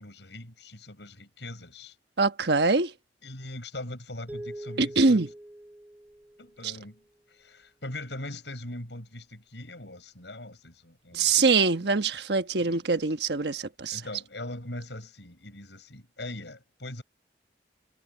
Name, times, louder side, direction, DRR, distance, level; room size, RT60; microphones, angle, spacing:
voice 1, 0.0-2.0 3.2-5.2 6.4-11.4 11.8-11.9 12.6-12.8 13.9-17.0, left 1 dB, 80° left, 7.1 m, -41 dB
voice 2, 2.2-2.9 4.8-5.3 11.1-14.0, right 4 dB, 70° right, 1.2 m, -24 dB
sound 1, 4.3-6.9, right 1 dB, 10° right, 3.3 m, -43 dB
head